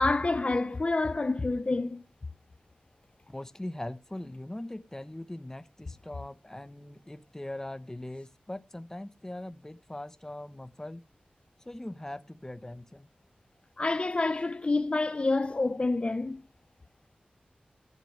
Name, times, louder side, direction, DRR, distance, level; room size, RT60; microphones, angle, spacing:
voice 1, 0.0-2.0 13.8-16.4, left 3 dB, 40° left, 0.6 m, -28 dB
voice 2, 3.3-11.0 11.6-13.1, left 1 dB, 15° left, 1.0 m, -41 dB
14.0 x 6.8 x 4.6 m
wide cardioid pair, 75°, 3 cm